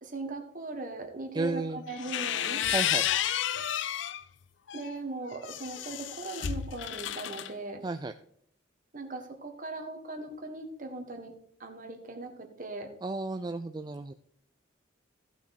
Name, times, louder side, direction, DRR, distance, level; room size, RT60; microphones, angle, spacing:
voice 1, 0.0-2.6 4.7-7.8 8.9-11.3 11.6-12.9, right 2 dB, 45° right, 4 dB, 1.6 m, -39 dB
voice 2, 1.3-1.8 2.7-3.1 7.8-8.1 13.0-14.1, right 3 dB, 20° right, 9 dB, 0.3 m, -33 dB
sound 1, 1.9-4.2 4.7-7.5, left 10 dB, 65° left, 0.4 m, -31 dB
15.0 x 5.9 x 4.2 m, 0.66 s
head